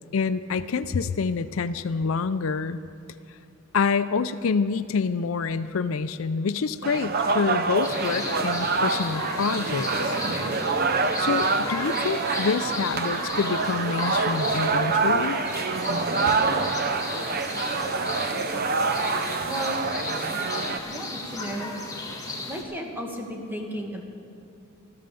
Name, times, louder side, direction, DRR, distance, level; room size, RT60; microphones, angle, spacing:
voice 1, 0.1-2.8 3.7-10.2 11.2-15.4, left 5 dB, 75° left, 13 dB, 0.5 m, -27 dB
sound 1, 6.8-20.8, right 4 dB, 50° right, 0.8 m, -26 dB
sound 2, 7.8-22.6, left 2 dB, 15° left, 1.8 m, -35 dB
voice 2, 19.4-19.8 20.9-21.7 22.5-24.0, equal, 10° right, 1 dB, 1.8 m, -34 dB
14.0 x 14.0 x 6.9 m, 2.6 s
head